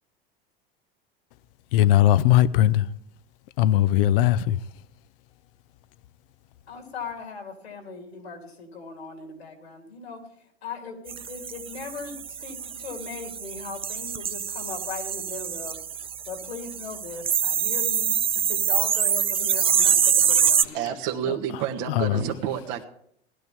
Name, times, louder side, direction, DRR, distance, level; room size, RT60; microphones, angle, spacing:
voice 1, 1.7-2.8 3.6-4.6 22.0-22.1, left 12 dB, 60° left, 16 dB, 0.7 m, -19 dB
voice 2, 6.7-10.2 10.6-15.8 16.2-20.9, left 5 dB, 85° left, 3 dB, 3.5 m, -39 dB
sound 1, 11.1-20.6, right 8 dB, 20° right, 0.5 m, -25 dB
voice 3, 20.7-22.9, right 9 dB, 55° right, 3 dB, 1.5 m, -29 dB
18.5 x 12.0 x 3.6 m, 0.66 s
hypercardioid pair, 90°, 31 cm